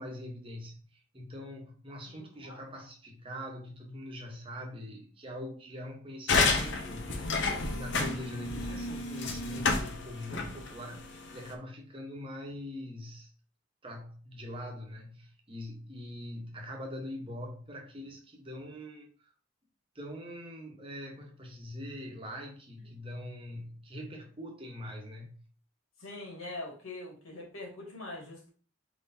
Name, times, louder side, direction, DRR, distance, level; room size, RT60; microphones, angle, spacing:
voice 1, 0.0-7.3 7.6-13.3 13.8-19.3 19.9-25.4, left 1 dB, 25° right, 1.0 m, -43 dB
voice 2, 2.1-2.6 26.0-28.5, left 2 dB, 90° left, 2.0 m, -43 dB
sound 1, 6.3-11.5, left 3 dB, 60° left, 0.7 m, -31 dB
4.7 x 3.9 x 2.7 m
head